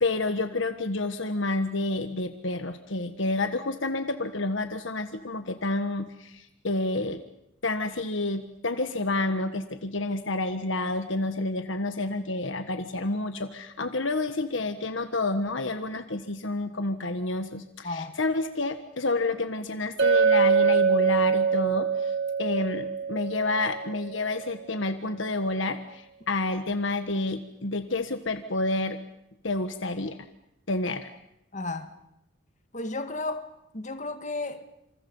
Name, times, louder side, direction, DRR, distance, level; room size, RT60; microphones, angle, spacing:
voice 1, 0.0-7.2 7.6-29.0 29.4-30.2 30.7-31.1, left 2 dB, 65° left, 1.4 m, -29 dB
voice 2, 17.8-18.2 31.5-32.0 32.7-33.5 33.7-34.7, left 2 dB, 35° left, 2.0 m, -33 dB
Chink clink, 20.0-24.2, right 6 dB, 55° right, 1.6 m, -24 dB
28.0 x 27.5 x 5.6 m
head